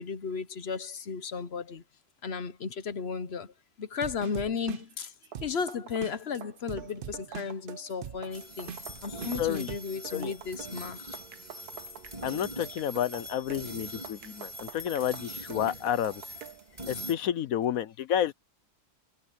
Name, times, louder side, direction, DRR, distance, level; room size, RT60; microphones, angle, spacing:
voice 1, 0.0-1.8 2.2-5.1 5.4-8.7 9.0-11.0, left 5 dB, 50° left, 1.0 m, -34 dB
sound 1, 4.0-9.8, right 8 dB, 60° right, 0.6 m, -42 dB
sound 2, 5.1-16.7, right 9 dB, 85° right, 1.6 m, -47 dB
sound 3, 8.3-17.2, equal, 25° right, 3.0 m, -42 dB
voice 2, 9.4-9.7 10.1-10.3 12.2-16.2 16.9-18.3, left 10 dB, 70° left, 1.1 m, -30 dB
omnidirectional pair, 1.6 m